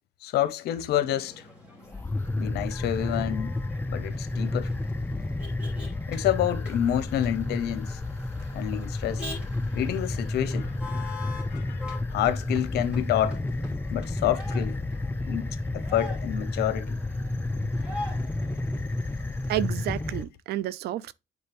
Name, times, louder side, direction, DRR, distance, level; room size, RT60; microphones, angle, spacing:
voice 1, 0.2-1.5 2.4-3.6 3.9-4.7 6.1-8.0 8.5-9.3 9.7-11.1 11.5-11.8 12.1-13.4 13.9-14.8 15.2-17.0, left 12 dB, 75° left, 0.9 m, -28 dB
Motor vehicle (road), 1.0-20.2, left 2 dB, 5° right, 3.0 m, -44 dB
sound 1, 1.9-20.2, left 2 dB, 10° left, 0.4 m, -31 dB
voice 2, 19.5-21.1, right 13 dB, 70° right, 0.5 m, -30 dB
8.6 x 4.0 x 3.4 m
cardioid pair, 110°, 17 cm